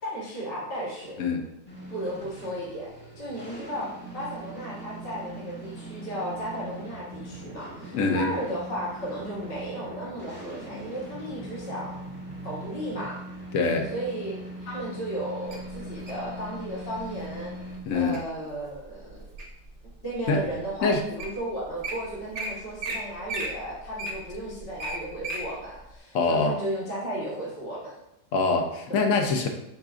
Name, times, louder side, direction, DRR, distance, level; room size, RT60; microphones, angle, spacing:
voice 1, 0.0-1.2 1.9-12.0 12.4-13.2 13.9-17.5 17.9-19.3 20.0-28.0 28.9-29.0, right 1 dB, 40° left, -7 dB, 1.4 m, -34 dB
sound 1, 1.7-17.8, right 1 dB, 10° left, 0.9 m, -41 dB
voice 2, 7.9-8.3 13.5-13.9 17.8-18.2 20.3-20.4 20.8-21.0 26.1-26.5 28.3-29.5, left 4 dB, 65° left, 3 dB, 0.9 m, -24 dB
Wild animals, 15.5-16.3 17.0-17.2 17.7-18.2 18.7-19.7 20.2-20.3 20.9-21.0 21.2-21.4 21.6-21.9 22.3-22.5 22.8-23.0 23.3-25.4 25.9-26.0, right 2 dB, 55° right, 1.0 m, -34 dB
4.8 x 3.9 x 2.4 m, 0.82 s
omnidirectional pair, 1.7 m